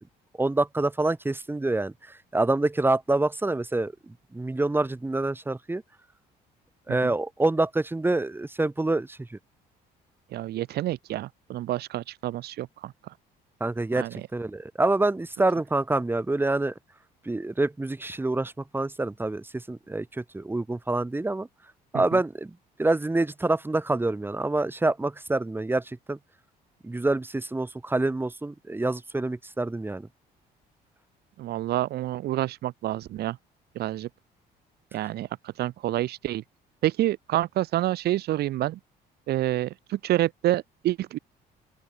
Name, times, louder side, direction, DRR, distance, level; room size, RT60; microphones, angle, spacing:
voice 1, 0.4-1.9 2.3-5.8 6.9-9.4 13.6-16.7 17.3-21.5 21.9-22.5 22.8-26.2 26.8-30.1, right 2 dB, 10° right, 5.6 m, -26 dB
voice 2, 10.3-12.9 14.0-14.3 21.9-22.2 31.4-33.4 33.7-34.1 34.9-36.4 36.8-38.8 39.3-41.2, right 14 dB, 70° right, 2.8 m, -28 dB
open air
cardioid pair, 110°, 17 cm